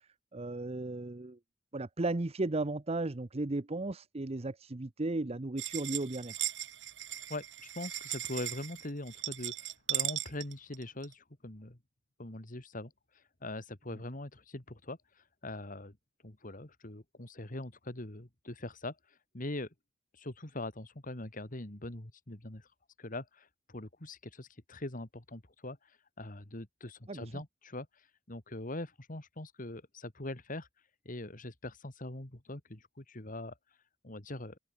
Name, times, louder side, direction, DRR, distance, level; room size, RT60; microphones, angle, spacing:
voice 1, 0.3-1.4 1.7-6.4 27.1-27.4, right 2 dB, 35° right, 0.8 m, -35 dB
sound 1, 5.6-11.1, right 13 dB, 75° right, 3.3 m, -37 dB
voice 2, 7.3-11.8 12.2-16.0 16.2-19.7 20.1-22.7 23.0-34.6, left 2 dB, 45° left, 2.4 m, -43 dB
open air
head